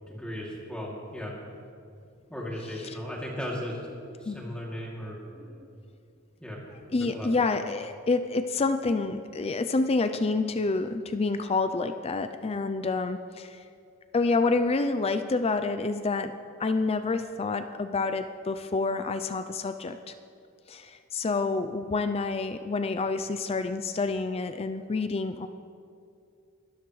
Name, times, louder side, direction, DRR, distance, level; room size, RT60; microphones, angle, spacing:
voice 1, 0.1-1.4 2.3-5.6 6.4-6.6 6.9-7.3, equal, 5° left, -4 dB, 2.7 m, -37 dB
voice 2, 6.9-13.6 14.1-16.3 16.6-20.1 20.7-25.5, left 3 dB, 30° left, 9 dB, 0.4 m, -28 dB
23.5 x 13.0 x 3.2 m, 2.4 s
head